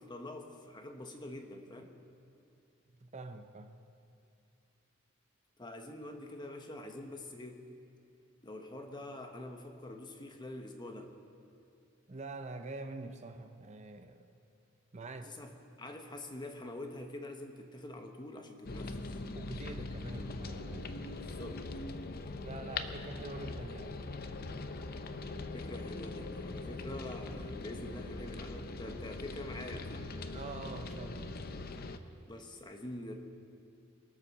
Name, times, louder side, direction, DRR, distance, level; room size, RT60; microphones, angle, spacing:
voice 1, 0.0-1.9 5.6-7.7 8.4-11.2 15.2-19.1 21.2-21.6 25.5-30.1 32.3-33.1, left 1 dB, 20° left, 4 dB, 1.2 m, -45 dB
voice 2, 2.9-3.8 12.1-14.3 14.9-15.4 19.3-21.1 22.4-24.0 30.3-31.4, right 2 dB, 35° right, 6 dB, 0.7 m, -45 dB
sound 1, 18.6-32.0, left 3 dB, 45° left, 0.7 m, -41 dB
23.0 x 8.3 x 6.6 m, 2.5 s
head